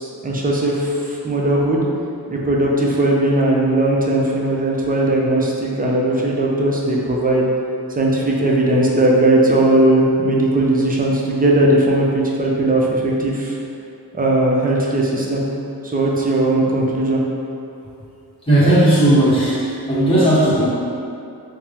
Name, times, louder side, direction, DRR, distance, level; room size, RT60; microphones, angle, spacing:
voice 1, 0.0-1.8 2.3-7.4 8.0-13.6 14.1-15.4 15.8-17.2, right 1 dB, 20° right, -3 dB, 0.5 m, -18 dB
voice 2, 18.5-20.7, right 1 dB, 15° left, -11 dB, 1.2 m, -15 dB
3.4 x 2.0 x 2.8 m, 2.5 s
cardioid pair, 65°, 40 cm